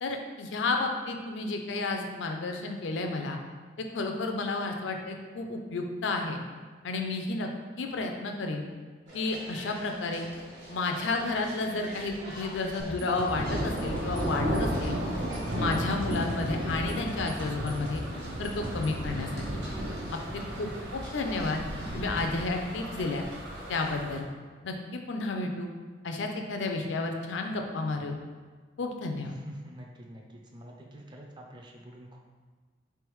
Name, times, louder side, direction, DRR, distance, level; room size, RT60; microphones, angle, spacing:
voice 1, 0.0-3.4 3.8-6.4 6.8-7.5 7.8-8.7 9.1-10.3 10.7-14.9 15.5-18.0 18.4-19.6 20.6-21.6 21.9-23.2 23.7-24.3 24.6-25.7 26.0-28.1 28.8-29.3, left 3 dB, 85° left, 3 dB, 0.5 m, -31 dB
sound 1, 9.1-24.0, equal, 65° right, 1.3 m, -46 dB
sound 2, 12.8-19.0, equal, 45° right, 0.9 m, -40 dB
sound 3, 13.3-24.2, equal, 80° right, 0.7 m, -34 dB
voice 2, 20.1-20.8 29.3-32.2, right 1 dB, 25° right, 0 dB, 0.4 m, -47 dB
3.7 x 3.4 x 3.1 m, 1.5 s
head